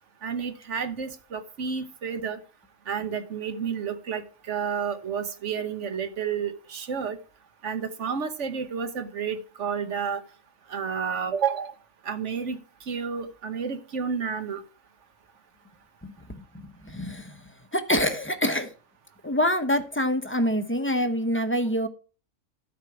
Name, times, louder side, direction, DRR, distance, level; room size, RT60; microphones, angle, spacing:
voice 1, 0.2-2.4 2.9-7.2 7.6-10.2 10.7-11.7 12.0-12.6 12.9-14.6, right 6 dB, 70° right, 9 dB, 1.3 m, -30 dB
voice 2, 16.8-17.3 17.7-18.7 19.2-21.9, equal, 10° left, 8 dB, 0.6 m, -25 dB
12.5 x 4.8 x 5.9 m, 0.37 s
omnidirectional pair, 1.3 m